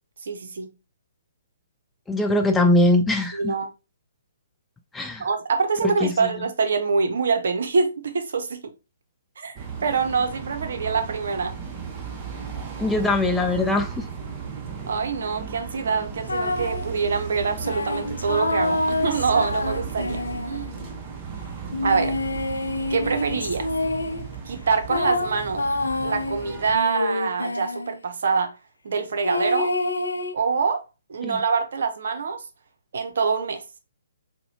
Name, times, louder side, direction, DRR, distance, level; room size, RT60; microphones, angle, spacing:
voice 1, 0.2-0.7 3.3-3.7 5.2-8.6 9.4-9.5 9.8-11.6 14.9-20.7 21.8-22.1 22.9-23.7 24.5-25.6 26.0-28.5 28.8-29.7 30.3-30.8 31.1-32.4 32.9-33.6, right 5 dB, 65° right, 0.7 m, -25 dB
voice 2, 2.1-3.4 4.9-5.3 5.8-6.3 12.8-14.1 31.2-31.4, left 2 dB, 5° left, 0.3 m, -21 dB
sound 1, 9.6-26.8, right 6 dB, 25° right, 0.8 m, -35 dB
sound 2, 16.3-16.9 17.6-20.9 21.7-24.3 24.9-28.0 29.2-30.3, left 2 dB, 80° left, 0.4 m, -27 dB
4.1 x 2.2 x 2.7 m
figure-of-eight pair, 135°, 0 cm